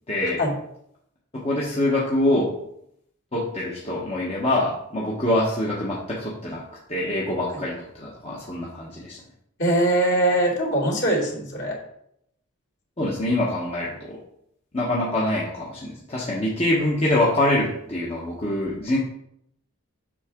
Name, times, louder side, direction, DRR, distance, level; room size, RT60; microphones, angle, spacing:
voice 1, 0.1-0.4 1.3-2.5 3.3-6.6 6.9-9.2 13.0-14.2 14.7-19.0, left 1 dB, 30° left, -5 dB, 1.1 m, -25 dB
voice 2, 9.6-11.8, right 1 dB, 55° left, -5 dB, 2.6 m, -22 dB
7.4 x 5.9 x 3.7 m, 0.73 s
head